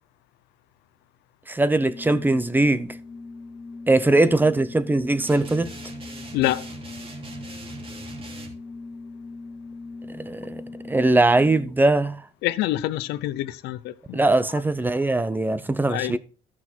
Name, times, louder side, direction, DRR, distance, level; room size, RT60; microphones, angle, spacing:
voice 1, 1.5-2.9 3.9-5.7 10.1-10.6 10.9-12.2 14.1-16.2, right 2 dB, 10° right, 0.7 m, -21 dB
Organ, 1.7-12.0, left 3 dB, 30° left, 1.1 m, -40 dB
sound 1, 5.3-8.5, right 3 dB, 35° right, 2.8 m, -40 dB
voice 2, 12.4-14.2 15.9-16.1, left 15 dB, 90° left, 0.7 m, -26 dB
13.5 x 6.0 x 4.5 m
cardioid pair, 110°, 17 cm